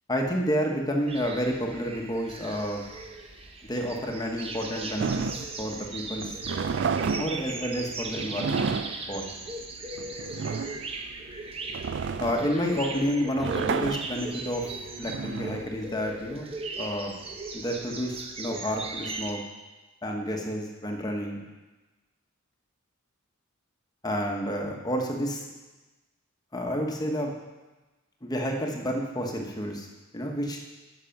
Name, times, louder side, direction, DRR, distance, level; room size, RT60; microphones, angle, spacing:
voice 1, 0.1-2.8 3.7-6.3 7.2-8.7 9.1-9.2 12.2-14.7 15.0-16.5 16.8-17.1 17.5-19.4 20.0-21.4 24.0-25.4 26.5-27.3 28.2-29.9 30.1-30.6, equal, 20° left, 1 dB, 1.1 m, -30 dB
sound 1, 1.1-19.3, right 3 dB, 30° right, 0.8 m, -38 dB
sound 2, 5.0-16.4, right 5 dB, 55° right, 0.4 m, -32 dB
10.5 x 6.1 x 5.8 m, 1.2 s
head